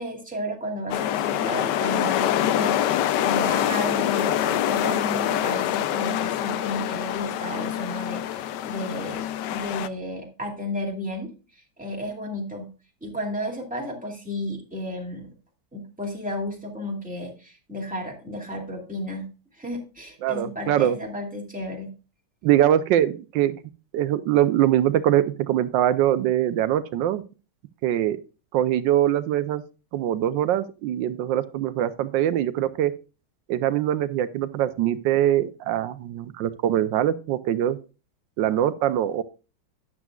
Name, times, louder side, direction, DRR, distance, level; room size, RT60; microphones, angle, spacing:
voice 1, 0.0-12.7 13.0-15.3 15.7-19.3 19.5-21.9, left 1 dB, 5° right, -1 dB, 2.3 m, -33 dB
sound 1, 0.9-9.9, left 11 dB, 75° left, 1.2 m, -25 dB
voice 2, 20.2-21.0 22.4-23.6 23.9-27.2 27.8-28.2 28.5-29.6 29.9-32.9 33.5-37.8 38.4-39.2, right 11 dB, 85° right, 13 dB, 1.3 m, -23 dB
12.0 x 9.4 x 2.3 m, 0.32 s
omnidirectional pair, 1.9 m